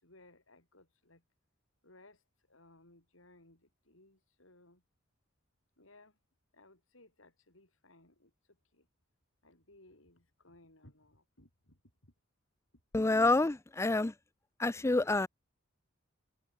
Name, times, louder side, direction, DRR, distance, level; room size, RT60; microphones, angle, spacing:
voice 1, 0.0-1.2 1.8-2.2 2.5-4.8 5.8-6.2 6.5-8.9 9.4-12.1, left 2 dB, 75° left, 7.5 m, -62 dB
voice 2, 12.9-14.1 14.6-15.3, left 2 dB, 15° left, 0.4 m, -28 dB
head